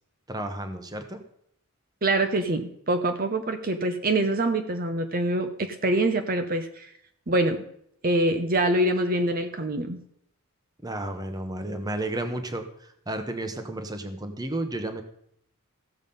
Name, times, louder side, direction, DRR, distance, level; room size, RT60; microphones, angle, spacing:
voice 1, 0.3-1.2 10.8-15.0, right 1 dB, 15° right, 7 dB, 0.9 m, -32 dB
voice 2, 2.0-6.9 7.3-7.6 8.0-10.0, right 1 dB, 40° right, 7 dB, 0.8 m, -25 dB
15.0 x 7.2 x 5.4 m, 0.70 s
head